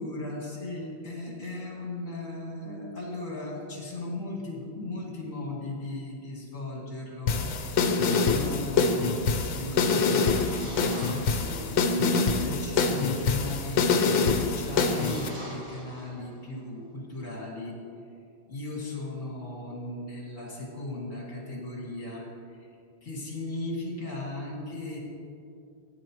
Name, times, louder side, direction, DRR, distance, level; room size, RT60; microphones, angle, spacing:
voice 1, 0.0-7.5 8.2-17.8 18.5-22.7 23.0-25.0, left 2 dB, 40° left, -3 dB, 2.5 m, -37 dB
sound 1, 7.3-15.3, left 4 dB, 70° left, 1.5 m, -25 dB
sound 2, 9.8-11.9 14.2-16.6, equal, 55° right, 2.5 m, -46 dB
17.0 x 10.0 x 3.1 m, 2.4 s
omnidirectional pair, 2.1 m